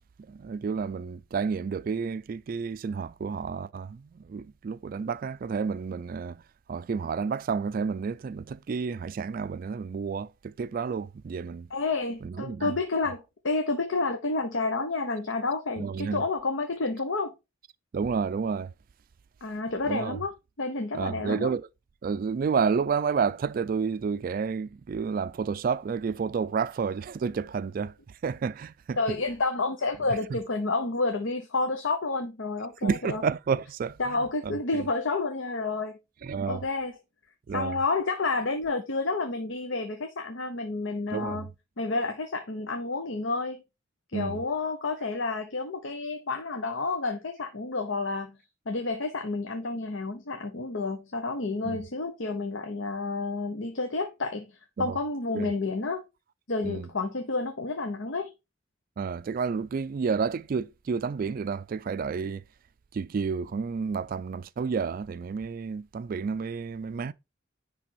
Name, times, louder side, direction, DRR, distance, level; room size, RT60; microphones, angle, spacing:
voice 1, 0.3-6.4 6.7-11.7 12.2-12.7 15.8-16.2 17.9-18.7 19.9-20.2 20.9-21.7 22.0-27.9 28.2-29.0 30.3-30.4 32.8-34.0 34.4-34.9 36.2-36.6 37.5-37.8 41.1-41.4 44.1-44.4 51.6-51.8 54.8-55.0 55.3-55.5 56.6-56.9 59.0-62.4 62.9-67.1, right 5 dB, 50° right, 0.3 m, -30 dB
voice 2, 11.7-17.3 19.4-20.3 20.6-21.5 29.0-33.2 34.0-35.9 36.5-36.9 37.5-41.5 41.8-43.6 44.1-48.3 48.7-54.5 54.8-56.0 56.5-58.3, left 3 dB, 85° left, 0.9 m, -30 dB
10.0 x 3.4 x 4.5 m
head